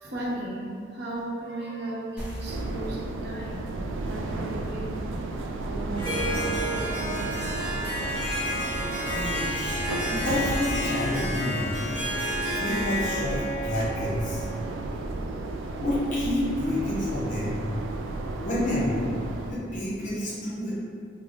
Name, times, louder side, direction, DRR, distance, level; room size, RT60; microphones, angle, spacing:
voice 1, 0.0-3.7 4.1-5.0 5.6-7.5, right 1 dB, 60° right, -5 dB, 0.6 m, -36 dB
sound 1, 2.2-7.3, equal, 5° right, 0.5 m, -44 dB
sound 2, 2.5-19.5, right 2 dB, 85° right, 0.3 m, -33 dB
Harp, 6.0-14.7, equal, 30° right, 1.2 m, -31 dB
voice 2, 9.0-9.8 10.1-11.9 12.6-14.5 15.8-17.5 18.4-19.1 19.5-20.7, left 1 dB, 45° left, -9 dB, 1.0 m, -29 dB
3.4 x 2.0 x 3.6 m, 2.3 s
head